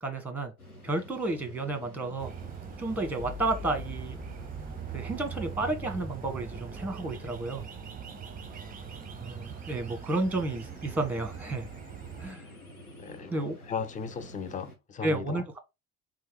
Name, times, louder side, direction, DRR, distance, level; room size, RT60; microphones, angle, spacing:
voice 1, 0.0-0.5 0.8-2.3 2.8-4.2 4.9-7.6 9.2-11.7 12.2-12.5 13.3-13.6 15.0-15.6, right 2 dB, 5° right, 1.1 m, -31 dB
Wind at Ocean shore., 0.6-14.8, equal, 90° left, 1.0 m, -50 dB
sound 1, 2.2-12.3, right 7 dB, 20° right, 0.6 m, -42 dB
sound 2, 3.2-13.2, left 4 dB, 70° left, 2.3 m, -49 dB
voice 2, 13.0-15.4, left 6 dB, 20° left, 0.5 m, -37 dB
3.7 x 3.4 x 3.2 m
figure-of-eight pair, 60°, 44 cm